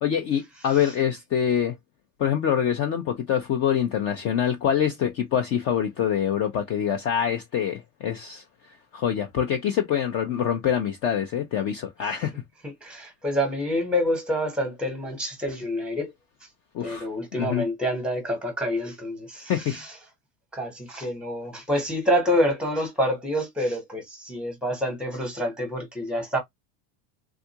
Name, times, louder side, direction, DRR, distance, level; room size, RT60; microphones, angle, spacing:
voice 1, 0.0-1.8 2.2-8.4 8.9-12.4 16.7-17.7 19.5-19.8, left 9 dB, 30° left, 0.6 m, -25 dB
voice 2, 12.6-16.1 16.8-19.9 20.5-26.4, equal, ahead, 1.0 m, -27 dB
3.6 x 2.4 x 2.8 m
supercardioid pair, 155°, 45 cm